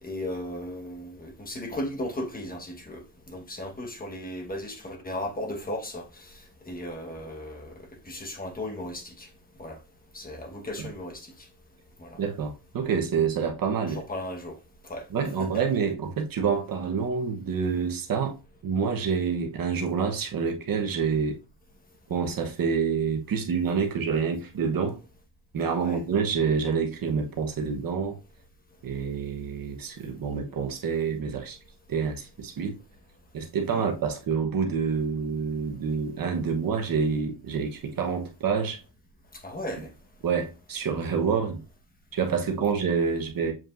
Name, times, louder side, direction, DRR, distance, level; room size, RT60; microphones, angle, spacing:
voice 1, 0.0-6.4 6.7-7.7 8.0-9.3 9.6-9.8 10.1-11.5 12.0-12.2 13.9-14.6 14.8-15.1 15.4-15.6 25.8-26.0 33.7-33.8 39.3-39.9, left 1 dB, 20° left, 1.3 m, -36 dB
voice 2, 12.2-14.0 15.1-18.4 18.6-21.4 22.1-25.0 25.5-28.2 28.8-31.6 31.9-32.8 33.3-38.8 40.2-41.6 42.1-43.5, right 6 dB, 55° right, 1.1 m, -27 dB
7.4 x 5.2 x 2.5 m
wide cardioid pair, 150°, 41 cm